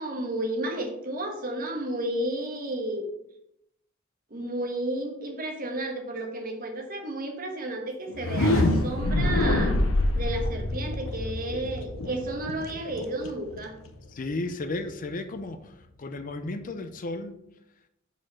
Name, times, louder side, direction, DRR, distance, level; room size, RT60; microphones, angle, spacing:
voice 1, 0.0-3.1 4.3-9.8 10.1-13.7, right 1 dB, 45° right, 1.2 m, -32 dB
sound 1, 8.1-14.0, left 1 dB, 85° left, 0.7 m, -26 dB
voice 2, 14.1-17.4, left 2 dB, 40° left, 0.5 m, -34 dB
5.1 x 4.3 x 5.7 m
head